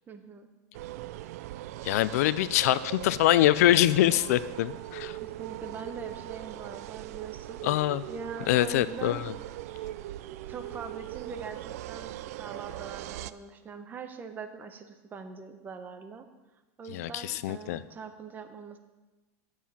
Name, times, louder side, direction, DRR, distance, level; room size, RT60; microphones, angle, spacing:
voice 1, 0.1-0.5 5.2-7.6 8.1-9.3 10.3-16.3 16.8-18.8, right 5 dB, 20° right, 8 dB, 0.9 m, -42 dB
sound 1, 0.7-13.3, right 14 dB, 70° right, 0.4 m, -40 dB
voice 2, 1.8-5.2 7.6-8.1 8.5-9.2 16.9-17.8, left 14 dB, 75° left, 17 dB, 0.5 m, -24 dB
11.0 x 7.5 x 5.7 m, 1.2 s
supercardioid pair, 140°, 8 cm